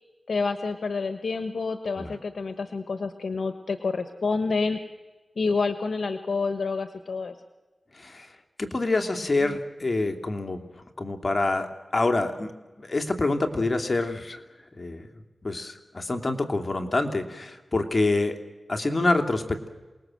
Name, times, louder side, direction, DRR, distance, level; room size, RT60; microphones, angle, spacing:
voice 1, 0.3-4.8 5.4-7.4 9.4-9.6, left 4 dB, 80° left, 8 dB, 1.2 m, -28 dB
voice 2, 8.0-8.3 8.6-10.6 11.0-12.5 12.8-14.4 14.8-15.0 15.4-18.4 18.7-19.7, left 2 dB, 50° left, 5 dB, 2.8 m, -26 dB
28.0 x 19.5 x 7.8 m, 1.2 s
cardioid pair, 40°, 0 cm